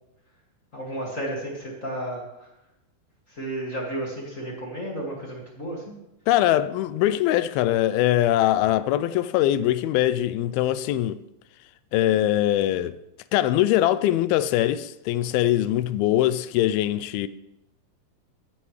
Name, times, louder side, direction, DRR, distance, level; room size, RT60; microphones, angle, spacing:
voice 1, 0.7-2.5 3.3-5.9, right 1 dB, 30° left, 1.8 m, -33 dB
voice 2, 6.3-11.2 11.9-13.0 13.3-17.3, left 13 dB, 80° left, 2.3 m, -22 dB
15.0 x 12.5 x 3.2 m
omnidirectional pair, 4.4 m